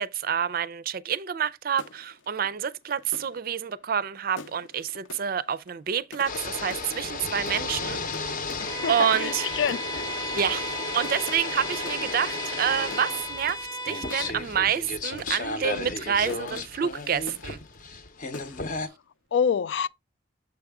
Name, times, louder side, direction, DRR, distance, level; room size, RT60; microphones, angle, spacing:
voice 1, 0.0-8.0 8.9-9.5 10.3-17.6, right 8 dB, 50° right, 0.4 m, -28 dB
sound 1, 1.7-18.1 18.3-18.9, left 3 dB, 80° left, 0.8 m, -47 dB
sound 2, 6.3-18.9, left 3 dB, 45° left, 0.7 m, -34 dB
voice 2, 8.6-10.1 18.3-18.7 19.3-19.9, left 7 dB, 65° left, 0.3 m, -28 dB
Bowed string instrument, 8.6-14.4, right 1 dB, 15° left, 0.7 m, -36 dB
7.0 x 4.8 x 3.5 m
head